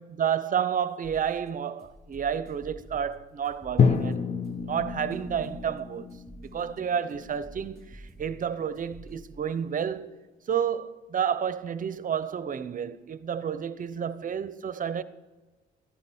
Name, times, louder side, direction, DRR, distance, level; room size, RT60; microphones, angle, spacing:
voice 1, 0.0-4.2 4.6-6.2 6.4-10.2 10.5-15.0, right 8 dB, 40° right, 0.7 m, -30 dB
sound 1, 1.0-9.3, right 2 dB, ahead, 3.1 m, -50 dB
Drum, 3.8-7.8, left 6 dB, 35° left, 0.8 m, -28 dB
13.5 x 11.0 x 5.4 m
cardioid pair, 90°, 20 cm